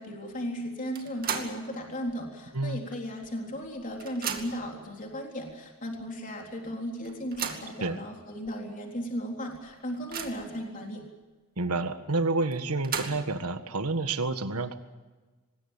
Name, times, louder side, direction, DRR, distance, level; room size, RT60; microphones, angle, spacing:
voice 1, 0.0-11.0, equal, 35° left, 1 dB, 3.8 m, -36 dB
sound 1, 0.9-1.7 2.1-2.2 3.2-3.3 3.6-4.7 5.5-5.6 6.0-6.1 7.0-7.8 8.5-8.6 8.9-9.0 9.5-10.6 12.5-13.4, right 7 dB, 40° right, 2.4 m, -36 dB
voice 2, 11.6-14.7, right 3 dB, 85° right, 9 dB, 1.7 m, -29 dB
24.5 x 21.0 x 7.3 m, 1.3 s
head